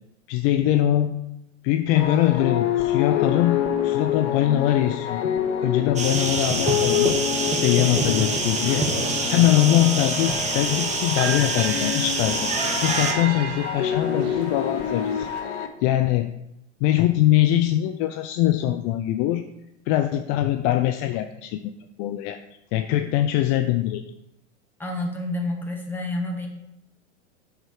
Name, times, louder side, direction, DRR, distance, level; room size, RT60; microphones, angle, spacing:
voice 1, 0.3-1.2 1.6-7.1 7.5-12.5 12.8-15.3 15.8-16.3 16.8-19.4 19.9-21.7 22.0-22.4 22.7-24.0, left 13 dB, 45° left, 8 dB, 0.5 m, -22 dB
sound 1, 1.9-15.7, left 9 dB, 80° left, 1.0 m, -27 dB
sound 2, 6.0-13.1, right 3 dB, 20° right, 1.3 m, -26 dB
sound 3, 10.2-15.4, right 6 dB, 50° right, 1.2 m, -36 dB
voice 2, 24.8-26.5, left 2 dB, 5° left, 0 dB, 1.8 m, -29 dB
7.3 x 5.0 x 4.9 m, 0.86 s
hypercardioid pair, 105°, 35 cm